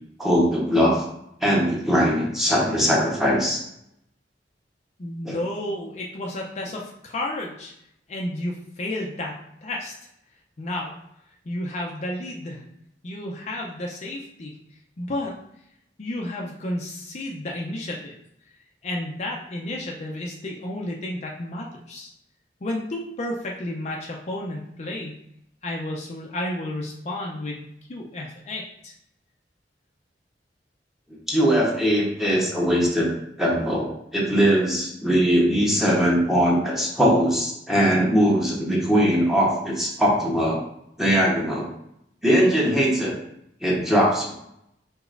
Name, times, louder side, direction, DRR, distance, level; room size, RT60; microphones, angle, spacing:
voice 1, 0.2-1.0 1.4-3.6 5.2-5.4 31.3-33.1 33.4-40.6 41.0-41.7 42.2-43.2 43.6-44.3, equal, ahead, -4 dB, 1.1 m, -21 dB
voice 2, 5.0-7.7 8.1-9.9 10.6-10.9 11.5-12.6 13.0-14.5 15.0-15.3 16.0-18.2 18.8-22.1 22.6-25.2 25.6-28.9, left 1 dB, 40° left, -1 dB, 0.5 m, -32 dB
5.0 x 4.2 x 2.5 m, 0.76 s
head